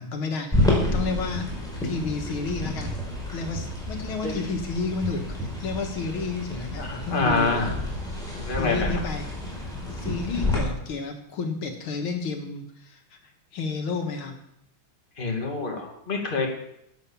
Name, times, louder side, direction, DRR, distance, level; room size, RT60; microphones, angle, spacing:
voice 1, 0.0-1.5 1.8-3.0 3.3-7.7 8.5-9.3 9.9-14.3, left 4 dB, 75° left, 4 dB, 2.2 m, -31 dB
sound 1, 0.5-10.6, left 1 dB, ahead, 4.5 m, -29 dB
voice 2, 6.8-7.7 8.3-8.9 15.2-16.5, left 3 dB, 25° left, 1 dB, 2.3 m, -26 dB
12.0 x 9.2 x 7.1 m, 0.77 s
omnidirectional pair, 2.3 m